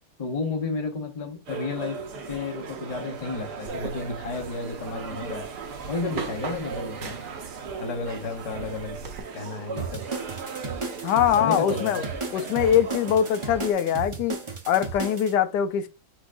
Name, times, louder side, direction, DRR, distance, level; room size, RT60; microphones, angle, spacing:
voice 1, 0.2-2.0 2.3-5.5 5.9-7.1 7.8-9.0 9.3-10.0 11.4-12.0, left 3 dB, 35° left, 0.6 m, -32 dB
sound 1, 1.5-13.7, right 5 dB, 75° right, 1.4 m, -37 dB
sound 2, 3.7-9.2, right 4 dB, 55° right, 1.2 m, -40 dB
sound 3, 9.8-15.3, right 4 dB, 30° right, 0.6 m, -34 dB
voice 2, 11.0-12.1 12.3-14.4 14.7-15.9, left 9 dB, 90° left, 1.2 m, -22 dB
4.7 x 4.4 x 2.5 m
omnidirectional pair, 1.8 m